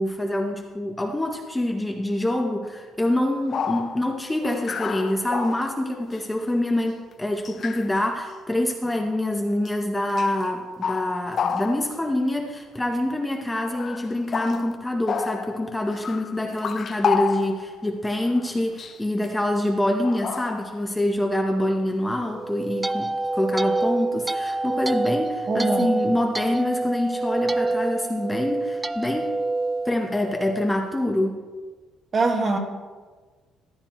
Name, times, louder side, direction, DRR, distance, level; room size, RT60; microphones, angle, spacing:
voice 1, 0.0-29.4 29.8-31.4, left 1 dB, 10° left, 2 dB, 0.8 m, -26 dB
sound 1, 3.2-3.3 3.5-6.2 7.1-7.2 7.5-8.0 8.8-9.1 9.7-9.8 10.1-10.5 10.8-12.2 13.2-13.3 13.7-17.9 18.2-18.5 18.8-19.0 20.0-20.9, left 6 dB, 40° left, 0.5 m, -30 dB
sound 2, 22.3-30.7, right 2 dB, 15° right, 0.3 m, -27 dB
voice 2, 25.5-26.0 32.1-32.6, right 3 dB, 35° right, 3 dB, 1.5 m, -23 dB
14.5 x 11.0 x 3.0 m, 1.4 s
cardioid pair, 135°, 0 cm